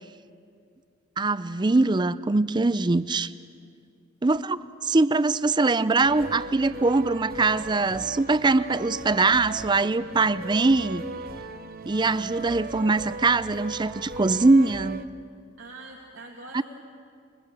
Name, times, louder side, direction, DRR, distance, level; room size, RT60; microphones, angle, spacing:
voice 1, 1.2-3.3 4.2-11.0 11.9-15.0 16.5-16.6, right 3 dB, 25° right, 16 dB, 0.5 m, -22 dB
sound 1, 6.0-15.1, right 3 dB, 50° right, 0.8 m, -38 dB
voice 2, 15.6-16.6, right 2 dB, 85° right, -2 dB, 2.3 m, -43 dB
25.5 x 23.0 x 6.8 m, 2.3 s
head